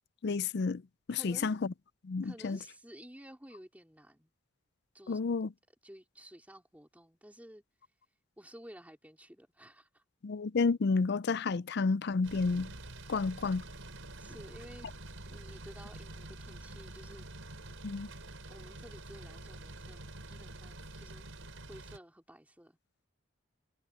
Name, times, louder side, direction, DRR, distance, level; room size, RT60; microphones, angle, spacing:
voice 1, 0.2-0.8 1.1-1.6 2.0-2.6 5.1-5.5 10.2-12.7 13.1-13.6 17.8-18.1, left 4 dB, 55° left, 0.4 m, -30 dB
voice 2, 1.1-1.6 2.2-4.3 4.9-5.2 5.7-7.6 8.4-10.0 13.1-13.4 14.2-14.9 15.3-17.3 18.5-21.2 21.7-22.8, equal, 10° right, 3.5 m, -53 dB
sound 1, 12.2-22.0, right 2 dB, 75° right, 5.0 m, -47 dB
head